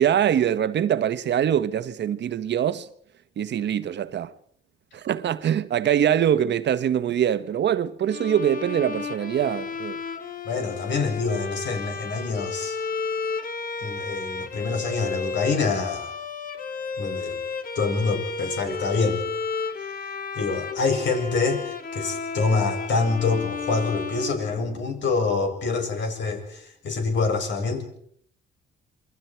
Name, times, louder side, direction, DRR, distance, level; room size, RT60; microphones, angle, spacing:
voice 1, 0.0-2.9 3.4-4.3 4.9-10.0, right 9 dB, 60° right, 1.3 m, -23 dB
Bowed string instrument, 8.1-25.1, left 5 dB, 45° left, 2.2 m, -33 dB
voice 2, 10.5-12.8 13.8-16.1 17.0-17.4 17.7-19.2 20.3-27.8, left 4 dB, 65° left, 7.6 m, -26 dB
28.0 x 23.0 x 4.7 m
cardioid pair, 90°, 20 cm